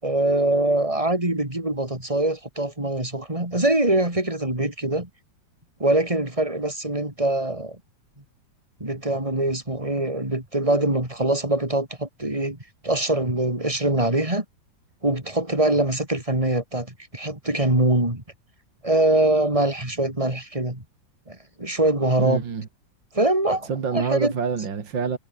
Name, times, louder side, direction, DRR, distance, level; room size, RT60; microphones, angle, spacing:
voice 1, 0.0-5.1 5.8-7.8 8.8-12.6 12.8-14.4 15.0-16.9 17.1-18.2 18.8-20.8 21.3-22.4 23.1-24.3, right 1 dB, 15° right, 5.0 m, -23 dB
voice 2, 22.2-22.7 23.6-25.2, right 6 dB, 70° right, 3.0 m, -27 dB
omnidirectional pair, 2.1 m